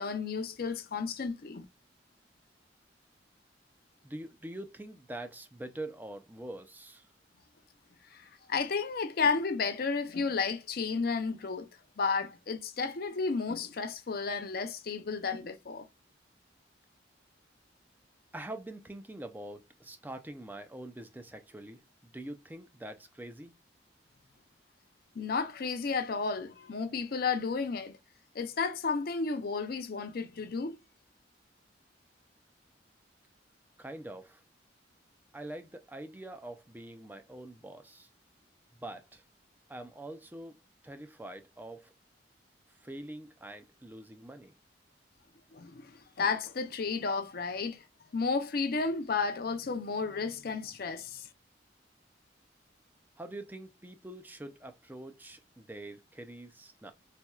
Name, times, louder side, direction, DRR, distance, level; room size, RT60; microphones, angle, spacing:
voice 1, 0.0-1.6 8.1-11.7 12.0-15.9 25.2-28.0 28.3-30.8 45.5-47.8 48.1-51.3, left 4 dB, 55° left, 0.5 m, -32 dB
voice 2, 4.0-7.0 18.3-21.8 22.1-23.5 33.8-34.4 35.3-38.1 38.8-39.2 39.7-40.6 40.8-41.9 42.8-44.5 53.2-56.9, right 1 dB, 10° right, 0.4 m, -44 dB
4.2 x 2.3 x 2.3 m
head